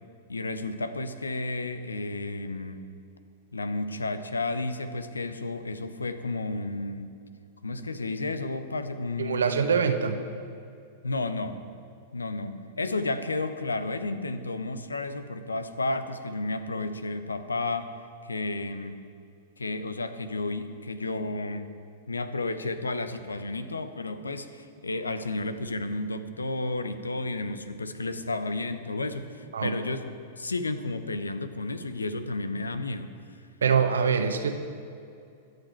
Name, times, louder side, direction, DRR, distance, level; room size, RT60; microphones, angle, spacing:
voice 1, 0.3-2.8 3.5-7.1 7.6-9.7 11.0-11.6 12.1-17.9 18.2-19.0 19.6-21.7 22.1-30.1 30.3-33.1, left 2 dB, 85° left, 11 dB, 0.9 m, -32 dB
voice 2, 9.2-10.2 29.5-29.7 33.6-34.5, right 6 dB, 75° right, 7 dB, 1.2 m, -24 dB
23.0 x 8.0 x 4.6 m, 2.4 s
figure-of-eight pair, 100°, 0 cm